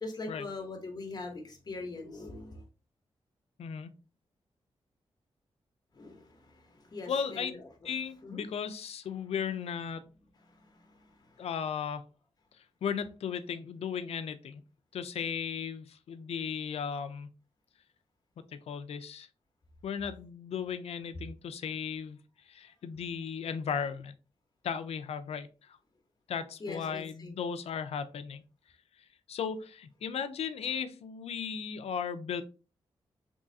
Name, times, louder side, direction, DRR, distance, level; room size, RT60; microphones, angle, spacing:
voice 1, 0.0-2.6 5.9-7.7 8.2-8.4 10.5-11.5 26.6-27.4, left 3 dB, 40° left, 1.0 m, -42 dB
voice 2, 3.6-4.0 7.1-7.5 7.8-10.0 11.4-12.1 12.8-14.6 14.9-17.3 18.5-19.3 19.8-24.1 24.6-25.8 26.3-28.4 29.3-32.4, left 7 dB, 75° left, 0.4 m, -36 dB
3.6 x 3.1 x 2.7 m
cardioid pair, 85°, 10 cm